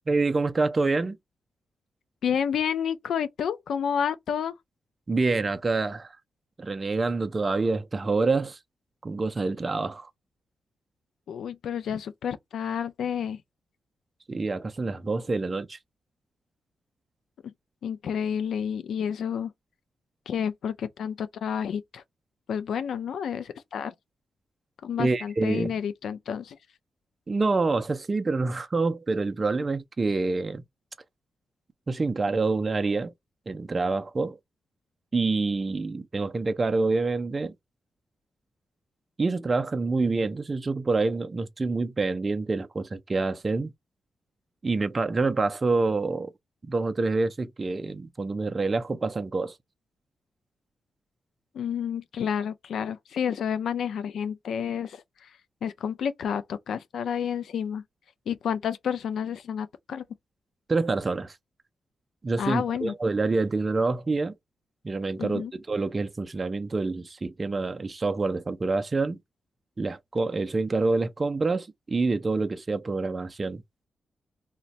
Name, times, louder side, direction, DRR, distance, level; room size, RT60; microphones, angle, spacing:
voice 1, 0.1-1.2 5.1-6.2 6.6-8.6 9.0-10.1 14.3-15.8 25.0-25.7 27.3-30.6 31.9-33.1 33.5-34.4 35.1-37.5 39.2-43.7 44.6-46.3 46.6-49.6 60.7-61.4 62.2-64.3 64.8-69.2 69.8-73.6, right 3 dB, 30° right, 0.3 m, -27 dB
voice 2, 2.2-4.5 11.3-13.4 17.8-19.5 20.3-22.0 22.5-23.9 24.8-26.6 51.5-57.8 58.3-60.0 62.4-62.9 65.2-65.5, left 8 dB, 85° left, 0.3 m, -30 dB
2.5 x 2.1 x 3.9 m
wide cardioid pair, 120°, 0 cm